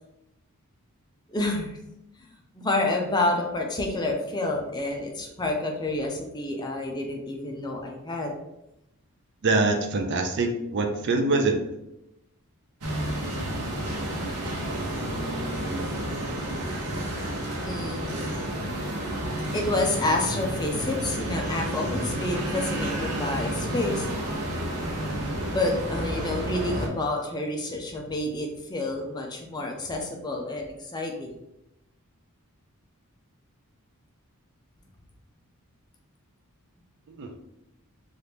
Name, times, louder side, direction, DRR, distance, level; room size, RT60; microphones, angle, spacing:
voice 1, 1.3-1.8 2.2-2.3 2.5-8.4 17.6-18.1 19.5-24.1 25.5-31.3, left 2 dB, 20° left, 1 dB, 0.4 m, -29 dB
voice 2, 9.4-11.6 37.1-37.3, right 3 dB, 50° right, 5 dB, 0.4 m, -24 dB
sound 1, 12.8-26.9, right 1 dB, 85° right, 0.8 m, -30 dB
2.8 x 2.4 x 3.4 m, 0.88 s
head